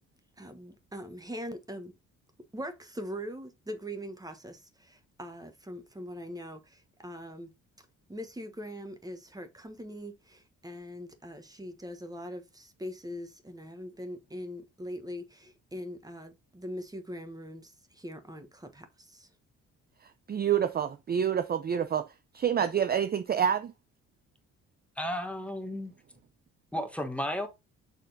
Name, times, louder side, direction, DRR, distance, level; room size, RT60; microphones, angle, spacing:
voice 1, 0.4-1.9 2.5-7.5 8.1-19.3, equal, 10° right, 1.2 m, -42 dB
voice 2, 20.3-22.1 22.3-23.7, right 8 dB, 30° right, 0.5 m, -27 dB
voice 3, 25.0-25.9 26.7-27.5, equal, 5° left, 1.5 m, -33 dB
6.8 x 3.6 x 4.0 m
cardioid pair, 90°, 30 cm